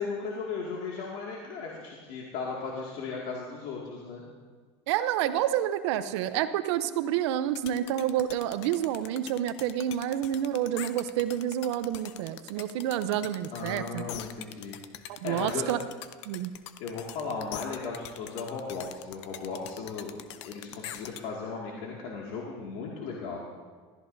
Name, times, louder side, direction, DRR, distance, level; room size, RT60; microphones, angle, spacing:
voice 1, 0.0-4.2 13.5-15.7 16.8-20.1 20.4-23.4, left 4 dB, 70° left, -3 dB, 2.2 m, -36 dB
voice 2, 4.9-14.1 15.2-15.8 16.3-16.5, right 11 dB, 85° right, 12 dB, 0.7 m, -29 dB
sound 1, 7.5-21.2, left 12 dB, 85° left, 0.6 m, -42 dB
19.0 x 14.0 x 2.7 m, 1.5 s
supercardioid pair, 105°, 14 cm